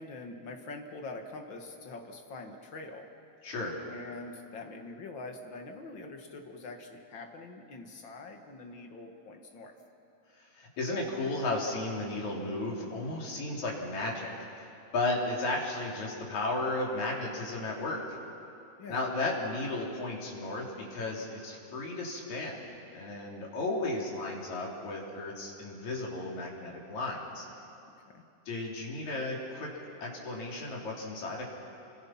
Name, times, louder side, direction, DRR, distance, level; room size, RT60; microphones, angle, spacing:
voice 1, 0.0-3.1 3.9-9.7 18.8-19.0 28.1-28.2, left 3 dB, 45° left, 4 dB, 2.1 m, -44 dB
voice 2, 3.4-3.7 10.5-14.6 14.9-18.0 18.9-22.6 22.9-27.5 28.5-29.7 30.0-31.5, left 2 dB, 65° left, -3 dB, 4.7 m, -34 dB
29.0 x 24.5 x 5.9 m, 2.7 s
omnidirectional pair, 3.5 m